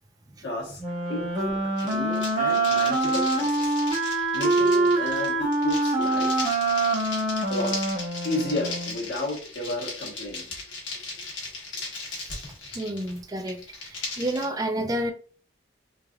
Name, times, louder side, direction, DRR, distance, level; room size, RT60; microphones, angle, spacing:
voice 1, 0.4-0.8 1.1-4.0 4.3-6.5 7.5-7.8 8.2-10.5, left 1 dB, 65° left, -2 dB, 1.2 m, -32 dB
Wind instrument woodwind instrument, 0.8-9.0, right 2 dB, 35° right, 0.8 m, -25 dB
sound 1, 1.8-14.5, left 3 dB, 80° left, 1.1 m, -37 dB
voice 2, 12.0-12.4 12.7-15.1, right 1 dB, 20° right, 5 dB, 0.4 m, -30 dB
3.2 x 2.4 x 2.3 m, 0.41 s
head